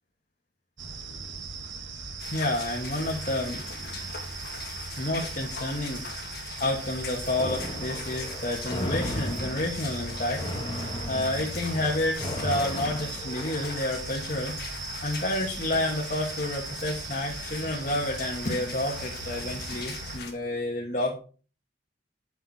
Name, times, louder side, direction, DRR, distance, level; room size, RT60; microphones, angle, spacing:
sound 1, 0.8-20.2, right 4 dB, 85° right, 1.7 m, -38 dB
sound 2, 2.2-20.3, left 5 dB, 60° left, 2.3 m, -41 dB
voice 1, 2.3-4.0 5.0-6.0 6.6-10.4 11.1-14.6 15.0-21.2, left 1 dB, 40° left, 0 dB, 1.6 m, -30 dB
sound 3, 7.4-13.8, left 1 dB, 25° left, 1.9 m, -36 dB
10.0 x 7.2 x 4.2 m, 0.37 s
head